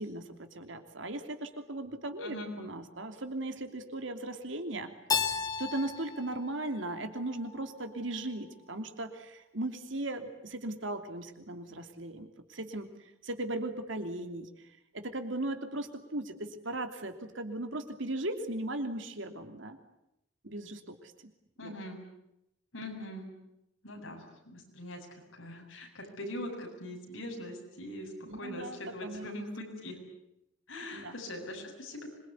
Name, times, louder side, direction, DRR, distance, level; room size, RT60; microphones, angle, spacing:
voice 1, 0.0-4.9 5.6-12.9 13.2-14.5 14.9-19.8 20.4-21.1 21.6-21.8 28.3-29.3 30.8-31.1, right 1 dB, 70° right, 7 dB, 3.0 m, -37 dB
voice 2, 2.2-2.5 21.6-22.0 22.7-23.3 23.8-30.0 30.7-32.1, left 1 dB, 90° left, 2 dB, 7.6 m, -42 dB
Keyboard (musical), 5.1-7.9, left 5 dB, 20° left, 2.3 m, -35 dB
26.0 x 22.5 x 9.6 m, 0.83 s
head